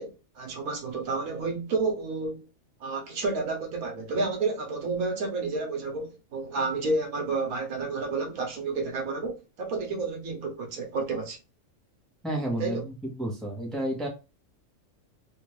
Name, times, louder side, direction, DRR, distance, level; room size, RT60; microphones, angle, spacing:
voice 1, 0.0-2.5 2.8-11.4 12.6-12.8, right 3 dB, 80° right, 1.4 m, -30 dB
voice 2, 12.2-14.1, right 1 dB, ahead, 0.9 m, -31 dB
3.5 x 2.5 x 3.1 m
omnidirectional pair, 1.5 m